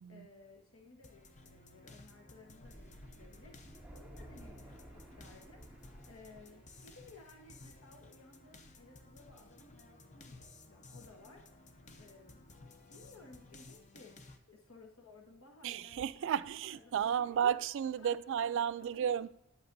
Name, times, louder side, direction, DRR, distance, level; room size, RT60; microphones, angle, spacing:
voice 1, 0.1-14.1 14.5-17.6 18.0-19.0, left 3 dB, 80° left, 1.2 m, -58 dB
sound 1, 1.0-14.4, left 2 dB, 35° left, 0.7 m, -57 dB
sound 2, 1.4-14.3, equal, 60° left, 2.8 m, -68 dB
Thunder, 2.6-7.5, right 1 dB, 5° right, 2.0 m, -55 dB
voice 2, 15.6-19.3, right 8 dB, 65° right, 0.3 m, -33 dB
9.4 x 8.6 x 2.6 m
head